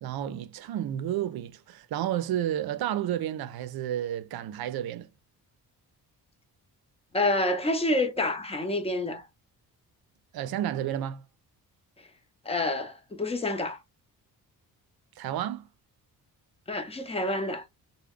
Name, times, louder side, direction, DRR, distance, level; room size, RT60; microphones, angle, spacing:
voice 1, 0.0-5.1 10.3-11.2 15.2-15.7, right 11 dB, 75° right, 0.5 m, -31 dB
voice 2, 7.1-9.3 12.4-13.8 16.7-17.7, left 2 dB, 15° left, 0.7 m, -28 dB
3.3 x 2.2 x 3.6 m
cardioid pair, 110°, 37 cm